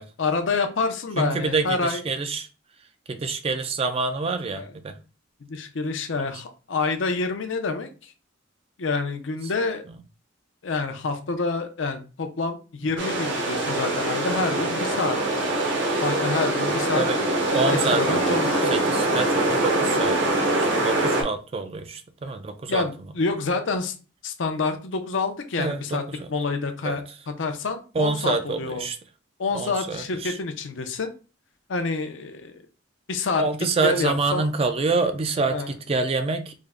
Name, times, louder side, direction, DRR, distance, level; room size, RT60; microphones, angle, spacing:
voice 1, 0.2-2.0 4.5-4.6 5.4-8.1 8.8-9.8 10.6-15.2 16.0-17.0 17.5-18.7 22.7-23.9 24.2-26.0 26.3-27.0 27.4-28.8 29.4-31.1 31.7-32.6 33.1-33.4 33.8-34.4 35.5-35.7, left 4 dB, 70° left, 0.6 m, -27 dB
voice 2, 1.2-2.5 3.1-5.0 9.9-10.0 14.3-14.4 17.0-17.2 17.5-22.9 25.6-26.3 26.8-27.0 27.9-29.0 29.5-30.4 33.4-36.5, right 3 dB, 30° right, 0.3 m, -27 dB
sound 1, 13.0-21.2, right 1 dB, 65° right, 0.9 m, -23 dB
3.6 x 2.1 x 3.4 m
head